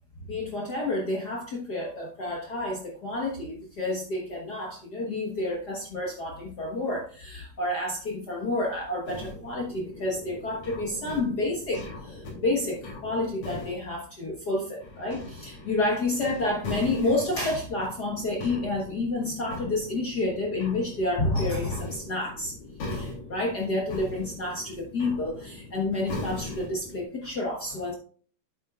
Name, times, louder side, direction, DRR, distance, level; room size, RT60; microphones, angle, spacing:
voice 1, 0.3-22.5 22.9-27.9, left 2 dB, 50° left, -1 dB, 1.2 m, -29 dB
sound 1, 9.1-13.7 14.8-27.0, left 2 dB, 80° left, 4.7 m, -40 dB
9.1 x 8.2 x 2.4 m, 0.42 s
omnidirectional pair, 3.7 m